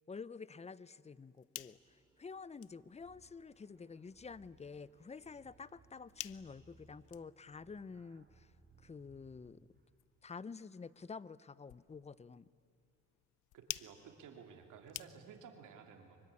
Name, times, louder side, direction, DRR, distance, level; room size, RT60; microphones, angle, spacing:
voice 1, 0.1-8.5 8.8-9.7 10.2-12.5, left 5 dB, 20° left, 19 dB, 0.6 m, -49 dB
sound 1, 1.1-15.6, left 17 dB, 90° left, 0.6 m, -54 dB
sound 2, 1.5-7.2, right 1 dB, 10° right, 4.5 m, -75 dB
sound 3, 2.9-9.8, right 3 dB, 35° right, 2.6 m, -67 dB
voice 2, 13.5-16.2, right 6 dB, 85° right, 4 dB, 2.8 m, -54 dB
24.5 x 23.5 x 9.8 m, 2.3 s
cardioid pair, 90°, 30 cm